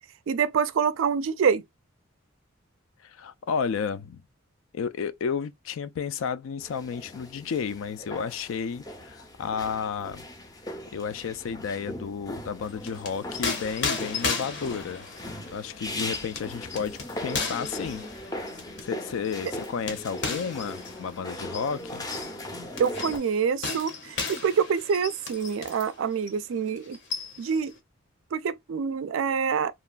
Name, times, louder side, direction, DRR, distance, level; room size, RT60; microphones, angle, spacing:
voice 1, 0.3-1.6 22.8-27.0 27.4-27.7 28.3-29.7, right 6 dB, 70° right, 0.3 m, -26 dB
voice 2, 3.0-4.2 4.7-10.2 10.9-15.0 15.5-18.0 18.8-22.1, left 6 dB, 75° left, 0.3 m, -32 dB
sound 1, 6.6-23.2, left 1 dB, 20° left, 0.5 m, -39 dB
sound 2, 12.6-25.9 26.3-26.4 26.8-27.6, left 4 dB, 55° left, 0.7 m, -35 dB
2.9 x 2.2 x 2.3 m
head